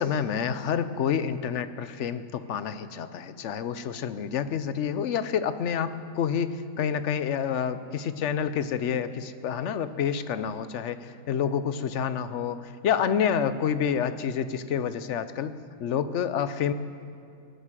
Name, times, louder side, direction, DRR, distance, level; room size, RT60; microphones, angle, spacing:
voice 1, 0.0-15.5 15.8-16.7, left 8 dB, 60° left, 12 dB, 0.9 m, -28 dB
19.0 x 9.9 x 7.5 m, 2.5 s
omnidirectional pair, 1.6 m